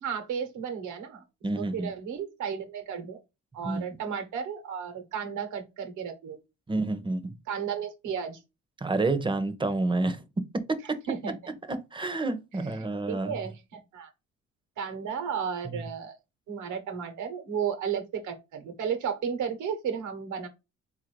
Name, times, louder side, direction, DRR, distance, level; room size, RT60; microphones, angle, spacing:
voice 1, 0.0-1.2 1.6-3.2 3.5-6.4 7.5-8.4 11.1-11.5 13.1-14.1 14.8-16.1 16.5-20.5, right 7 dB, 80° right, 1.0 m, -33 dB
voice 2, 1.4-1.9 3.6-3.8 6.7-7.4 8.8-11.0 11.5-13.4 15.6-15.8, right 2 dB, 15° right, 0.6 m, -29 dB
3.9 x 2.6 x 3.1 m
cardioid pair, 90°, 30 cm